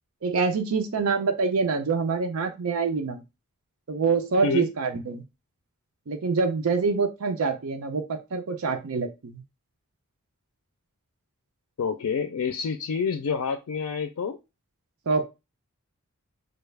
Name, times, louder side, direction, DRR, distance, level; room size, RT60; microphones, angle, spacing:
voice 1, 0.2-3.2 3.9-5.2 6.1-9.4 15.1-15.2, right 4 dB, 75° right, 6 dB, 0.5 m, -26 dB
voice 2, 11.8-14.4, left 5 dB, 90° left, 8 dB, 0.4 m, -28 dB
5.1 x 2.3 x 3.3 m, 0.26 s
head